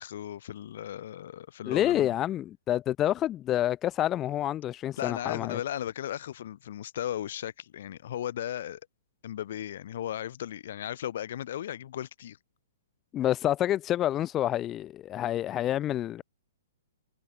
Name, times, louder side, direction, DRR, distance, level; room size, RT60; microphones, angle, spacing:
voice 1, 0.0-2.1 5.0-8.8 9.2-12.4, left 11 dB, 60° left, 2.6 m, -36 dB
voice 2, 1.7-5.6 13.1-16.2, left 12 dB, 20° left, 0.4 m, -28 dB
hypercardioid pair, 140°, 0 cm